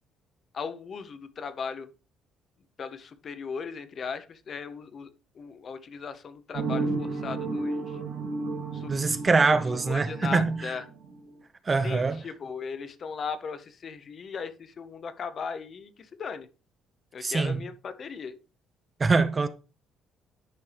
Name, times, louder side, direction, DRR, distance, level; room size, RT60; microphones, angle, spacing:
voice 1, 0.5-1.9 2.8-5.1 5.3-8.0 8.7-9.1 9.5-9.6 9.9-10.8 11.8-16.5 17.1-18.3, left 6 dB, 35° left, 0.7 m, -37 dB
sound 1, 6.5-11.3, right 3 dB, 75° right, 2.6 m, -33 dB
voice 2, 8.9-10.7 11.7-12.2 17.2-17.6 19.0-19.5, right 4 dB, 20° right, 0.4 m, -24 dB
11.0 x 4.3 x 3.3 m
cardioid pair, 170°, 0 cm